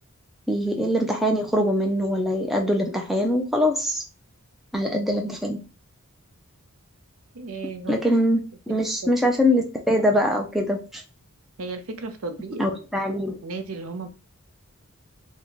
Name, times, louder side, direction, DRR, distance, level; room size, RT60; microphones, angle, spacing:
voice 1, 0.5-4.0 4.7-5.6 7.9-8.4 8.7-11.0 12.6-13.4, equal, ahead, 1 dB, 0.3 m, -23 dB
voice 2, 7.3-8.0 9.0-9.1 11.6-12.7 13.4-14.1, right 3 dB, 70° right, 7 dB, 0.6 m, -34 dB
3.6 x 2.1 x 3.0 m, 0.33 s
head